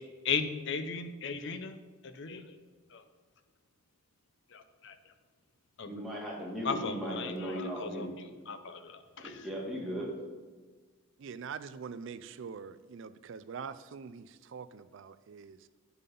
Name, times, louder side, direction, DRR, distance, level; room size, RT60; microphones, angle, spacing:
voice 1, 0.2-1.8 2.0-2.6 2.9-3.0 4.5-4.9 5.8-5.9 6.6-9.5, left 5 dB, 55° left, 0.6 m, -37 dB
voice 2, 5.9-8.1 9.2-10.1, equal, ahead, 1.8 m, -37 dB
voice 3, 11.2-15.6, right 6 dB, 55° right, 0.3 m, -44 dB
8.3 x 5.6 x 5.3 m
head